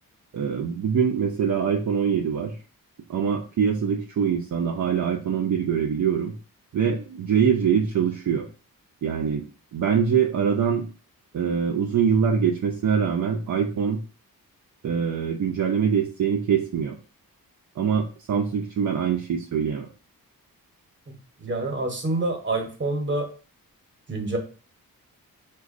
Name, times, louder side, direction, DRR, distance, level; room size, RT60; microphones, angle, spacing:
voice 1, 0.3-2.5 3.1-6.3 6.7-8.5 9.0-9.4 9.7-10.9 11.3-14.0 14.8-17.0 17.8-19.9, right 7 dB, 55° right, 2 dB, 0.4 m, -24 dB
voice 2, 21.4-23.3 24.1-24.4, right 2 dB, 30° right, 3 dB, 0.9 m, -27 dB
4.9 x 2.2 x 2.5 m, 0.37 s
wide cardioid pair, 125°, 35 cm